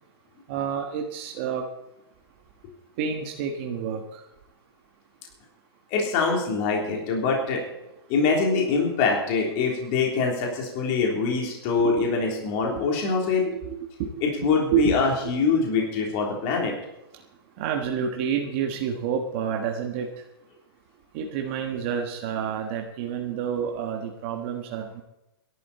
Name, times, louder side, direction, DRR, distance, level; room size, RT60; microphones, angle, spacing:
voice 1, 0.5-1.6 3.0-4.2 11.8-11.9 12.7-12.8 13.4-14.1 14.7-14.9 17.6-20.1 21.1-25.0, right 8 dB, 30° right, 1 dB, 1.4 m, -29 dB
voice 2, 5.9-7.6 8.1-13.4 14.4-16.7, left 4 dB, 25° left, 0 dB, 3.4 m, -24 dB
22.0 x 12.0 x 4.3 m, 0.91 s
hypercardioid pair, 175°, 13 cm